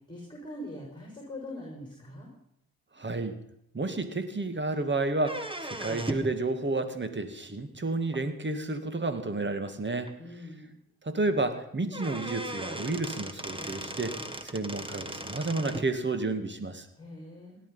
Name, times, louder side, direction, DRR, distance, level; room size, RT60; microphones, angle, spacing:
voice 1, 0.1-2.3 10.2-10.7 17.0-17.6, left 1 dB, 10° left, -1 dB, 6.2 m, -42 dB
voice 2, 3.0-3.4 3.7-10.1 11.0-14.1 14.4-16.9, right 2 dB, 30° right, 9 dB, 2.2 m, -31 dB
sound 1, 5.2-6.4 8.1-8.2 9.2-9.3 9.7-9.8 10.1-10.2 11.5-11.6 11.9-15.9, right 1 dB, 15° right, 1.6 m, -37 dB
17.5 x 12.0 x 5.6 m, 0.77 s
cardioid pair, 65°, 39 cm